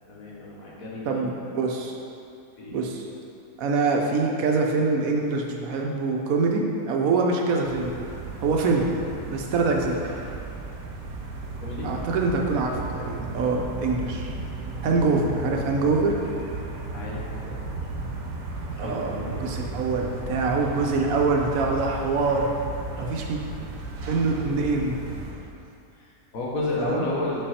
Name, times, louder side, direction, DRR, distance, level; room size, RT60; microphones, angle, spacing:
voice 1, 0.1-1.2 2.6-2.8 11.6-11.9 14.7-15.0 16.9-17.6 18.7-19.4 23.0-23.1 25.2-25.3 26.0-27.4, left 2 dB, 60° left, -5 dB, 1.6 m, -32 dB
voice 2, 1.1-2.0 2.7-3.1 3.6-7.9 8.4-8.9 9.3-10.0 11.8-14.3 14.8-16.2 18.8-22.5 23.0-23.4 24.1-25.0 26.8-27.1, right 3 dB, 65° right, 1 dB, 1.1 m, -24 dB
sound 1, 7.6-25.3, right 2 dB, 90° right, 1.4 m, -35 dB
5.8 x 5.5 x 4.2 m, 2.6 s
omnidirectional pair, 1.7 m